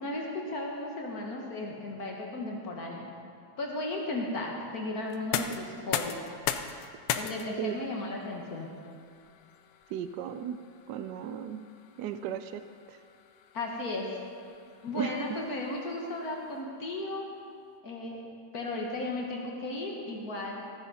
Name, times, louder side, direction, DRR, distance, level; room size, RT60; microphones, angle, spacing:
voice 1, 0.0-3.1 3.6-6.2 7.1-8.7 13.5-14.1 14.8-17.3 17.8-18.2 18.5-20.6, left 2 dB, 55° left, -1 dB, 1.9 m, -35 dB
sound 1, 5.1-16.9, left 9 dB, 80° left, 1.3 m, -40 dB
voice 2, 9.9-10.6 10.9-11.6 12.0-12.6 12.9-13.0 14.9-15.1, right 9 dB, 75° right, 10 dB, 1.1 m, -35 dB
14.5 x 9.6 x 4.2 m, 2.4 s
omnidirectional pair, 2.0 m